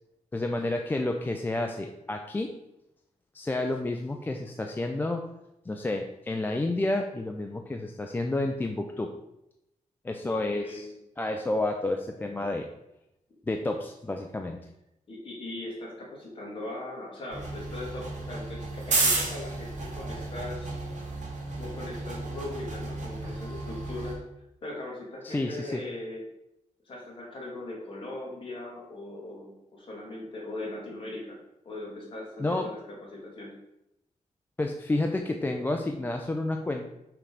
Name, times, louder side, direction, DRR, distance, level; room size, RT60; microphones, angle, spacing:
voice 1, 0.3-2.5 3.3-5.3 5.7-9.1 10.0-10.9 11.2-12.7 13.5-14.6 25.2-25.8 32.4-32.7 34.6-36.9, left 2 dB, 15° left, 3 dB, 0.3 m, -30 dB
voice 2, 10.2-10.9 15.1-20.8 21.0-21.2 21.6-24.2 24.6-26.2 26.9-31.4 31.6-32.8 33.1-33.5, left 2 dB, 40° left, -4 dB, 1.9 m, -39 dB
sound 1, 17.3-24.1, right 3 dB, 65° right, 1.7 m, -32 dB
5.8 x 3.2 x 5.1 m, 0.88 s
wide cardioid pair, 170°, 13 cm